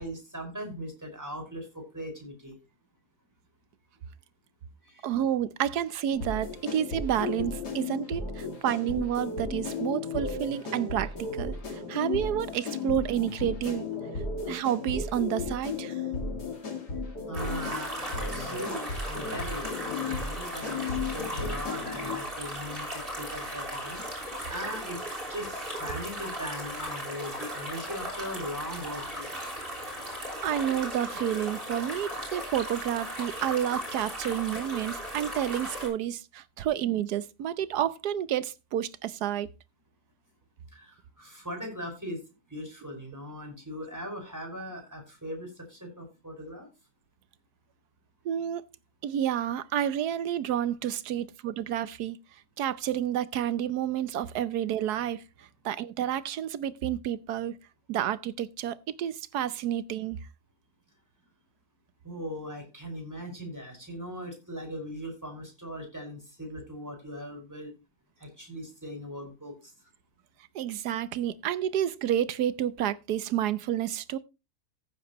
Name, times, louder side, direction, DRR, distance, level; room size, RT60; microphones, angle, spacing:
voice 1, 0.0-2.6 4.8-5.1 17.3-29.3 40.7-42.2 42.5-46.7 62.0-67.7 68.2-69.7, equal, 10° right, 5.2 m, -39 dB
voice 2, 5.0-13.9 14.4-16.0 30.4-39.5 48.2-48.6 49.0-52.2 52.6-57.6 57.9-60.2 70.5-74.2, right 11 dB, 75° right, 1.3 m, -30 dB
sound 1, 6.2-22.2, left 4 dB, 80° left, 3.0 m, -35 dB
sound 2, 17.3-35.9, equal, 35° right, 5.5 m, -37 dB
15.0 x 7.9 x 3.0 m
omnidirectional pair, 1.7 m